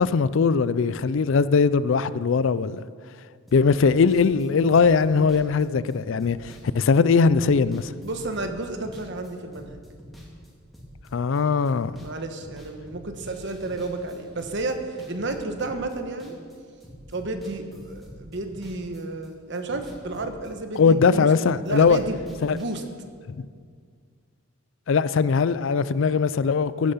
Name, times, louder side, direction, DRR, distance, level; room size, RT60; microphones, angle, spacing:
voice 1, 0.0-2.8 3.5-7.9 11.1-11.9 20.8-22.0 22.4-22.6 23.4-23.5 24.9-26.9, left 5 dB, 60° left, 0.4 m, -20 dB
sound 1, 3.5-12.1 12.4-16.6 16.8-19.3 19.5-21.4 21.7-22.8, equal, ahead, 2.2 m, -46 dB
voice 2, 8.0-9.8 12.0-16.3 17.1-21.3 21.6-22.2 22.5-22.8, right 2 dB, 55° right, 1.2 m, -32 dB
15.0 x 10.0 x 5.7 m
head